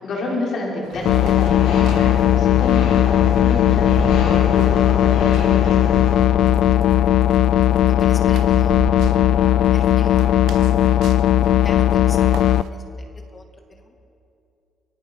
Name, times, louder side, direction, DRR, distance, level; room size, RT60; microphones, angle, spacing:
voice 1, 0.0-5.9, left 2 dB, 55° left, -3 dB, 6.3 m, -29 dB
sound 1, 0.8-12.7, right 10 dB, 80° right, 1.1 m, -37 dB
sound 2, 0.9-6.1, left 2 dB, 85° left, 7.4 m, -30 dB
sound 3, 1.1-12.6, left 12 dB, 70° left, 0.5 m, -17 dB
voice 2, 7.9-8.8 9.7-11.1 11.6-13.4 13.7-14.0, left 2 dB, 25° left, 4 dB, 2.3 m, -42 dB
29.5 x 23.0 x 5.8 m, 2.7 s
cardioid pair, 120°, 0 cm